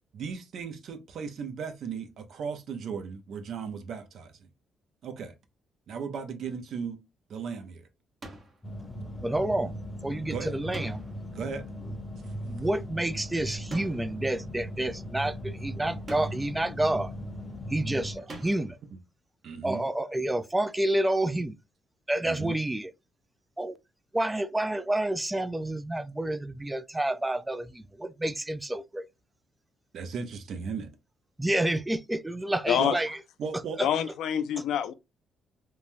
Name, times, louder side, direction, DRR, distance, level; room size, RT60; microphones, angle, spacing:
voice 1, 0.1-4.5 5.0-5.3 5.9-7.0 7.3-7.9 10.3-10.6 11.3-11.7 12.2-12.3 18.2-18.3 18.9-19.0 19.4-19.8 22.2-22.6 29.9-30.9 32.8-33.0 33.4-33.8, right 6 dB, 65° right, 0.6 m, -36 dB
sound 1, 8.2-8.7 10.7-11.4 13.7-14.3 16.1-16.6 18.3-18.8, right 2 dB, 40° right, 0.9 m, -44 dB
sound 2, 8.6-18.2, equal, 20° left, 0.7 m, -38 dB
voice 2, 9.2-11.0 12.4-17.1 17.7-18.8 19.6-21.5 22.1-22.9 23.6-23.8 24.1-29.1 31.4-33.2 33.8-33.9, right 1 dB, 10° right, 0.3 m, -29 dB
voice 3, 33.8-34.9, left 9 dB, 80° left, 0.4 m, -26 dB
3.1 x 2.2 x 2.6 m
cardioid pair, 90°, 0 cm